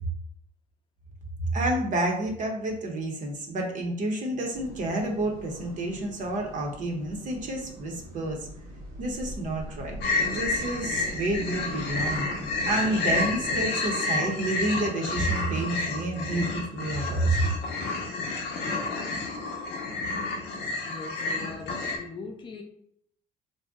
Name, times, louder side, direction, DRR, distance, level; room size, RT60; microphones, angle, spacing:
voice 1, 1.5-8.5 9.0-12.3 12.7-17.5, right 2 dB, 50° right, 1 dB, 0.7 m, -29 dB
sound 1, 4.5-13.7, equal, 85° right, 1.1 m, -42 dB
sound 2, 10.0-22.0, left 3 dB, 85° left, 0.6 m, -30 dB
voice 2, 20.8-22.6, left 3 dB, 30° left, 3 dB, 0.5 m, -41 dB
2.6 x 2.1 x 3.5 m, 0.66 s
cardioid pair, 110°, 17 cm